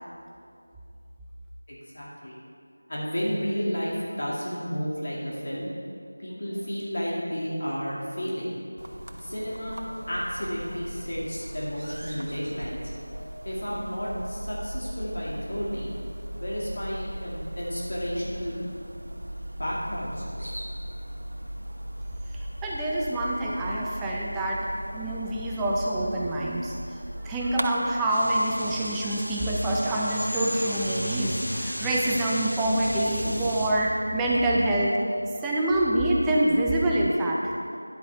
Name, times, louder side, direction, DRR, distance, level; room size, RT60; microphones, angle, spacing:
voice 1, 1.7-2.3 2.9-5.7 6.2-8.6 9.2-9.7 10.1-12.8 13.4-15.9 16.4-18.6 19.6-20.5, equal, 55° left, -6 dB, 2.4 m, -32 dB
sound 1, 8.8-27.7, equal, 85° right, 1.1 m, -38 dB
voice 2, 22.3-35.0 35.4-37.4, right 1 dB, 5° right, -4 dB, 0.6 m, -26 dB
sound 2, 28.1-33.7, equal, 80° left, 1.9 m, -34 dB
12.5 x 10.5 x 3.5 m, 2.4 s
figure-of-eight pair, 175°, 0 cm